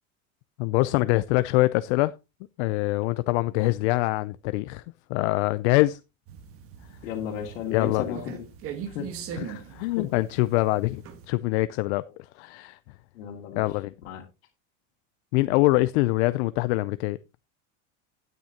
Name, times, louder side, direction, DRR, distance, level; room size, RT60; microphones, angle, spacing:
voice 1, 0.6-2.1 2.6-4.8 5.1-6.0 7.7-8.2 9.4-12.8 13.6-13.9 15.3-17.2, left 19 dB, 60° left, 0.5 m, -24 dB
sound 1, 6.3-11.3, right 8 dB, 35° right, 1.5 m, -41 dB
voice 2, 7.0-8.5 8.9-9.1 9.5-10.1 13.1-13.7 14.0-14.2, left 9 dB, 85° left, 2.6 m, -34 dB
12.0 x 9.4 x 2.8 m
supercardioid pair, 150°, 39 cm